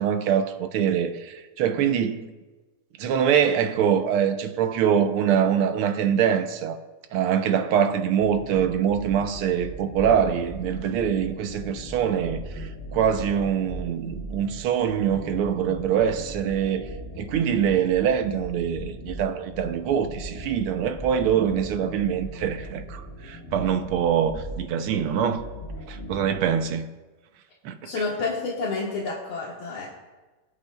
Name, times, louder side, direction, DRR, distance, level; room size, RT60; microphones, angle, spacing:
voice 1, 0.0-2.3 3.0-6.8 7.1-16.9 17.2-25.4 25.9-26.9 27.7-27.8, right 8 dB, 85° right, 1.7 m, -24 dB
sound 1, 8.2-26.7, equal, 35° left, 1.8 m, -39 dB
voice 2, 27.8-29.9, left 3 dB, 75° left, 2.3 m, -29 dB
24.0 x 8.4 x 2.3 m
omnidirectional pair, 2.3 m